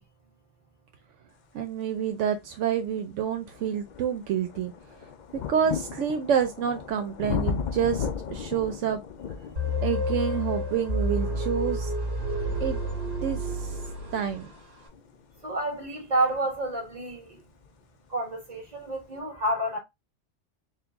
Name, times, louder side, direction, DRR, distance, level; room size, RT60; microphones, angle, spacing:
voice 1, 1.5-4.7 5.3-9.0 9.8-11.9 12.6-12.8 13.2-13.7 14.1-14.5, right 8 dB, 80° right, 0.9 m, -28 dB
sound 1, 2.4-2.5 3.1-17.8 18.7-18.8, left 7 dB, 60° left, 0.4 m, -37 dB
sound 2, 9.6-14.6, equal, 60° right, 1.7 m, -30 dB
voice 2, 15.4-17.4 18.1-19.8, right 1 dB, 35° right, 1.6 m, -29 dB
4.5 x 2.1 x 3.4 m
omnidirectional pair, 1.2 m